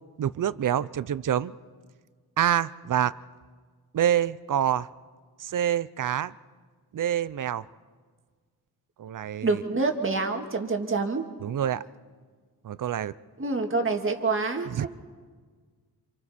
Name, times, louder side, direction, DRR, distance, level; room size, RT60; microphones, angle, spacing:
voice 1, 0.2-1.5 2.4-3.1 3.9-4.9 5.4-6.3 6.9-7.6 9.0-9.6 11.4-11.8 12.6-13.1 14.7-14.9, right 10 dB, 50° right, 16 dB, 0.6 m, -26 dB
voice 2, 9.4-11.3 13.4-14.9, right 3 dB, 30° right, 4 dB, 1.9 m, -27 dB
29.0 x 27.0 x 4.3 m, 1.5 s
wide cardioid pair, 125°, 40 cm